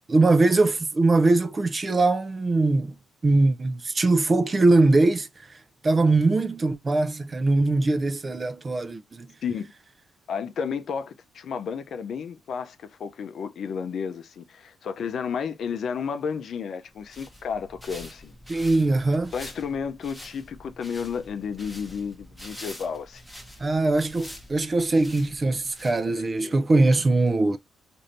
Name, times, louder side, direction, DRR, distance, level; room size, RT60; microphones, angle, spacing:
voice 1, 0.1-3.0 3.2-5.3 5.8-9.3 18.5-19.3 23.6-27.6, right 2 dB, 30° right, 0.5 m, -21 dB
voice 2, 9.4-9.7 10.3-18.4 19.3-23.2 26.0-26.6, left 6 dB, 60° left, 0.5 m, -32 dB
sound 1, 16.9-26.4, left 1 dB, 5° left, 0.9 m, -45 dB
3.2 x 2.6 x 2.6 m
cardioid pair, 90°, 0 cm